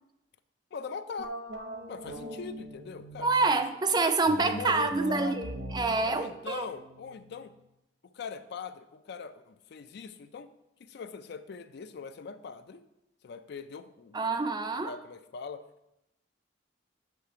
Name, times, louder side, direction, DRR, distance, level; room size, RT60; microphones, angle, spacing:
voice 1, 0.7-1.4 1.9-3.3 3.9-4.0 4.4-5.5 6.1-7.5 8.0-10.5 10.8-12.8 13.2-14.3 14.8-15.7, left 5 dB, 60° left, 11 dB, 0.4 m, -41 dB
sound 1, 1.2-3.5 4.2-7.6, right 1 dB, 70° right, 0.9 m, -41 dB
voice 2, 3.2-6.7 14.1-14.9, right 3 dB, 25° right, 8 dB, 0.4 m, -27 dB
8.1 x 3.3 x 5.7 m, 0.88 s
head